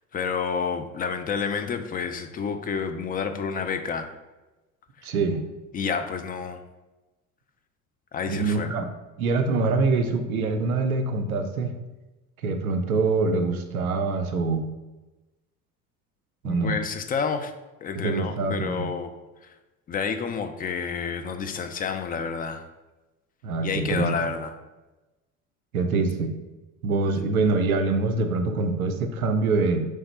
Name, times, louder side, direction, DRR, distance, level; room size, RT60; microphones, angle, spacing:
voice 1, 0.1-4.1 5.7-6.6 8.1-8.7 12.4-12.6 16.4-17.5 17.8-19.1 19.9-22.6 23.6-24.5, left 6 dB, 20° left, 7 dB, 0.4 m, -29 dB
voice 2, 5.0-5.4 8.3-8.9 9.2-11.7 12.4-14.6 16.4-16.8 17.9-18.9 23.4-24.3 25.7-26.3 26.8-29.8, right 3 dB, 85° right, 7 dB, 0.5 m, -24 dB
3.5 x 3.3 x 4.2 m, 1.1 s
figure-of-eight pair, 60°, 42 cm